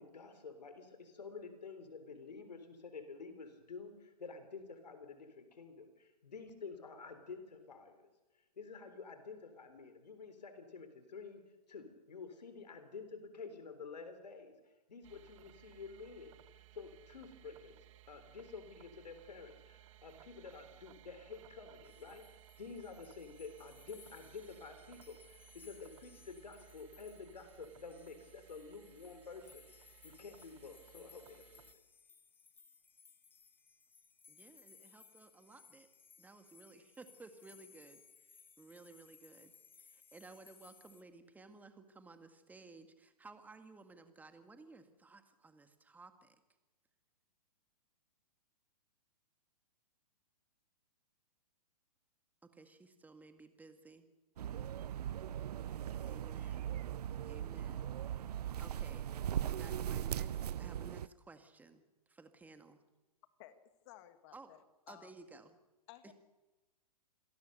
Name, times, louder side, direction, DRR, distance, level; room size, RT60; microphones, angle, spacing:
voice 1, 0.0-8.1 8.6-11.4 11.7-14.5 14.9-17.8 18.1-22.2 22.6-31.8, left 4 dB, 85° left, 9 dB, 3.7 m, -50 dB
sound 1, 15.0-31.7, right 15 dB, 50° right, 1.3 m, -61 dB
sound 2, 21.8-41.0, left 5 dB, 10° left, 1.3 m, -63 dB
voice 2, 34.3-35.9 36.2-38.0 38.3-39.5 39.8-46.4 52.5-54.1 56.0-56.8 57.2-57.9 58.2-58.3 58.6-59.1 59.6-61.8 62.1-62.8 64.3-64.5 64.9-65.6 66.0-66.1, right 3 dB, 10° right, 8 dB, 1.9 m, -56 dB
sound 3, 54.4-61.1, right 10 dB, 70° right, 0.7 m, -39 dB
voice 3, 63.9-65.1 65.9-66.1, left 14 dB, 45° left, 10 dB, 2.0 m, -56 dB
27.0 x 18.0 x 6.6 m, 1.1 s
hypercardioid pair, 125°, 21 cm